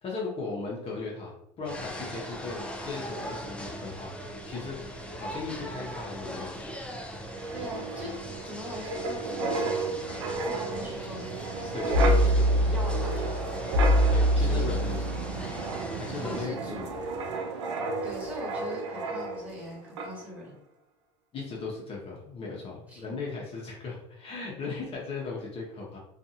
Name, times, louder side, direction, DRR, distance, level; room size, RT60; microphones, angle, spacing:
voice 1, 0.0-4.8 5.1-6.8 11.7-12.4 14.1-15.0 16.0-16.9 21.3-26.0, left 4 dB, 40° left, -3 dB, 0.8 m, -37 dB
sound 1, 1.6-16.4, equal, 5° left, 0.5 m, -40 dB
Wind, 7.3-19.7 20.0-20.2, right 1 dB, 90° right, 0.4 m, -28 dB
voice 2, 7.5-8.1 8.4-10.0 10.4-11.4 11.6-13.6 14.3-14.8 15.3-15.6 16.1-16.8 17.7-20.6 22.9-23.2, left 1 dB, 10° right, -4 dB, 1.3 m, -41 dB
2.5 x 2.4 x 2.7 m, 0.80 s
hypercardioid pair, 85°, 15 cm